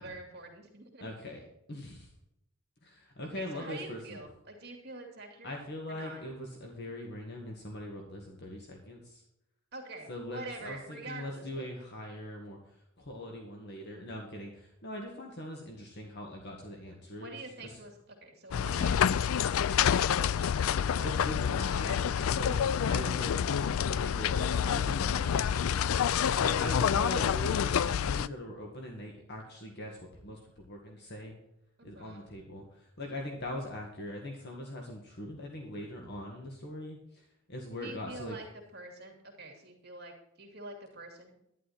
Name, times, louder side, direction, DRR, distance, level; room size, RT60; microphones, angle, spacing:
voice 1, 0.0-1.1 3.3-5.6 5.9-6.2 9.7-11.7 17.2-21.2 21.7-22.3 31.8-32.3 37.8-38.5 38.7-41.4, right 2 dB, 50° right, 2 dB, 2.5 m, -46 dB
voice 2, 1.0-1.4 1.7-2.1 2.8-4.2 5.4-9.2 10.1-12.6 13.0-17.7 21.0-31.3 31.8-38.4, left 1 dB, 55° left, 1 dB, 1.9 m, -41 dB
sound 1, 18.5-28.3, left 8 dB, 75° left, 0.4 m, -28 dB
11.5 x 11.0 x 4.3 m, 0.81 s
head